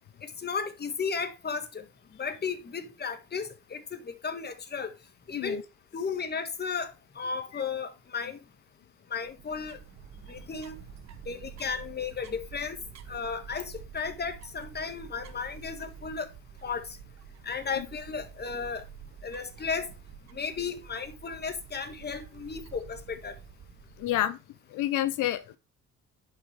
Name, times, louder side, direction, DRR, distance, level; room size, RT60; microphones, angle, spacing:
voice 1, 0.2-1.8 2.2-4.9 5.3-5.6 5.9-8.4 9.1-9.8 10.3-10.8 11.2-12.8 13.1-16.3 16.6-17.0 17.4-18.9 19.2-19.9 20.3-23.4, left 5 dB, 35° left, 1.6 m, -34 dB
sound 1, 9.1-24.4, right 7 dB, 60° right, 1.3 m, -48 dB
voice 2, 24.0-24.4 24.7-25.6, left 13 dB, 85° left, 0.7 m, -29 dB
10.0 x 5.6 x 3.2 m
cardioid pair, 90°, 30 cm